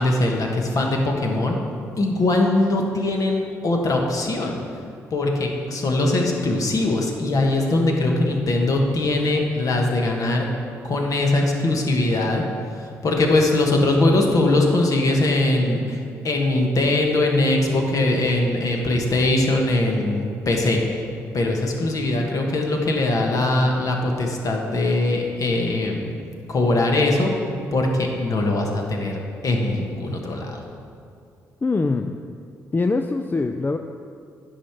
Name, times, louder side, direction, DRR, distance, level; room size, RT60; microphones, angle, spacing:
voice 1, 0.0-1.6 2.0-4.6 5.1-10.4 10.8-12.4 12.8-20.8 21.3-26.1 26.5-27.3 27.7-30.6, left 2 dB, 50° left, 1 dB, 1.5 m, -21 dB
voice 2, 31.6-32.2 32.7-33.8, left 3 dB, 25° left, 6 dB, 0.4 m, -23 dB
9.9 x 5.1 x 5.9 m, 2.4 s
hypercardioid pair, 45°, 8 cm